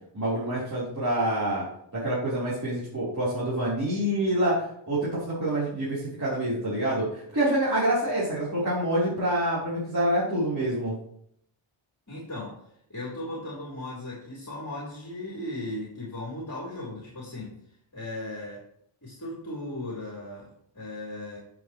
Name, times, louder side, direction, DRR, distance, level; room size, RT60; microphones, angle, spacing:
voice 1, 0.1-1.6 1.9-10.9, right 1 dB, 35° right, -10 dB, 3.9 m, -27 dB
voice 2, 12.1-17.6 17.9-18.6 19.0-21.4, left 1 dB, 40° left, -6 dB, 3.5 m, -37 dB
13.5 x 7.0 x 3.1 m, 0.69 s
wide cardioid pair, 90°, 49 cm